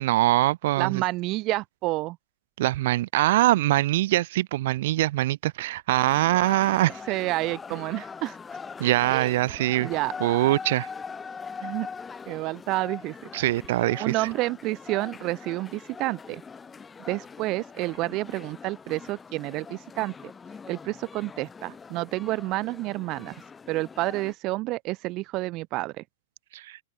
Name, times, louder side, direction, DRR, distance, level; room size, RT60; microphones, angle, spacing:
voice 1, 0.0-1.0 2.6-7.0 8.8-9.9 10.2-10.9 13.3-14.3 26.5-26.8, right 16 dB, 65° right, 1.3 m, -23 dB
voice 2, 0.8-2.2 7.1-8.4 9.1-9.3 9.8-10.1 11.6-11.9 12.3-13.3 14.0-16.4 17.1-20.1 20.7-23.4 23.7-26.0, right 20 dB, 40° right, 0.9 m, -29 dB
sound 1, 5.9-24.3, left 5 dB, 15° left, 2.0 m, -42 dB
hypercardioid pair, 125°, 0 cm